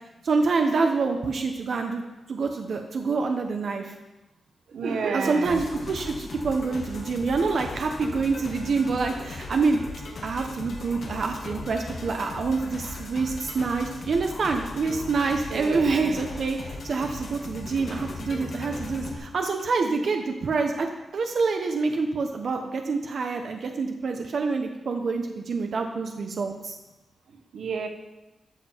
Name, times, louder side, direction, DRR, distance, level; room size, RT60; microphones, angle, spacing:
voice 1, 0.2-2.0 2.3-3.9 5.1-9.8 10.2-26.8, right 4 dB, 55° right, 4 dB, 0.9 m, -26 dB
voice 2, 4.7-5.6 15.5-16.2 27.5-27.9, right 5 dB, 85° right, 5 dB, 1.2 m, -30 dB
sound 1, 5.4-19.2, left 3 dB, 55° left, 1.8 m, -38 dB
13.0 x 7.4 x 4.5 m, 1.0 s
wide cardioid pair, 155°, 0 cm